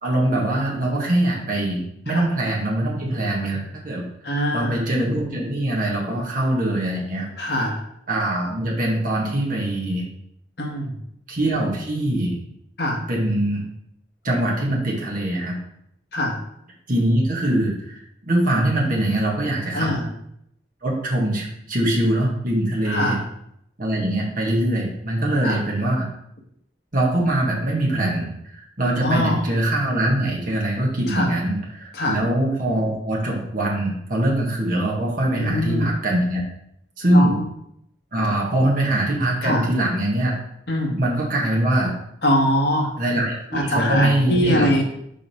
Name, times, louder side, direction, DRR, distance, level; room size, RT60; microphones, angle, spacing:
voice 1, 0.0-4.1 4.5-7.3 8.1-10.1 11.3-12.3 13.1-13.6 14.2-15.6 16.9-19.9 20.8-23.2 23.8-26.1 26.9-36.4 37.0-37.4 38.1-40.3 41.0-41.9 43.0-44.8, right 1 dB, 50° right, -3 dB, 1.7 m, -22 dB
voice 2, 4.2-4.8 7.4-7.8 10.6-10.9 12.8-13.0 16.1-16.4 19.7-20.1 22.8-23.2 25.4-25.6 29.0-29.4 31.1-31.3 31.9-32.2 35.4-36.0 37.1-37.4 39.4-39.7 40.7-41.0 42.2-42.9 43.5-44.8, left 1 dB, 60° left, -1 dB, 1.5 m, -22 dB
5.2 x 5.0 x 4.4 m, 0.74 s
head